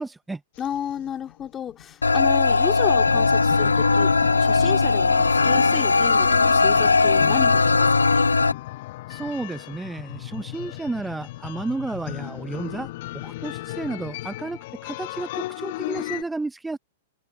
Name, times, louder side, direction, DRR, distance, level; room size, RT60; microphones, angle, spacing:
voice 1, 0.0-0.4 9.1-16.8, right 3 dB, 10° right, 0.8 m, -32 dB
sound 1, 0.6-2.2 2.7-16.2, left 17 dB, 55° left, 1.2 m, -36 dB
voice 2, 0.6-4.1 4.4-8.3, left 9 dB, 25° left, 2.6 m, -32 dB
sound 2, 2.0-8.5, left 4 dB, 85° left, 0.8 m, -19 dB
figure-of-eight pair, 105°, 0 cm